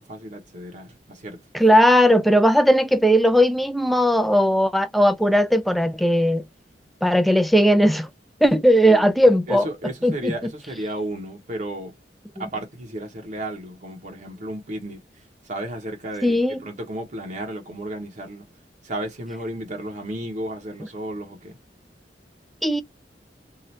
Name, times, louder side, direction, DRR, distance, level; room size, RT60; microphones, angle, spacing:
voice 1, 0.0-1.4 8.8-9.0 9.5-12.0 12.4-15.0 15.4-18.5 18.8-21.6, right 1 dB, 45° right, 0.8 m, -33 dB
voice 2, 1.5-6.4 7.0-8.1 8.4-9.6 10.0-10.3 16.2-16.6 22.6-22.8, equal, ahead, 0.4 m, -17 dB
2.8 x 2.4 x 3.1 m
head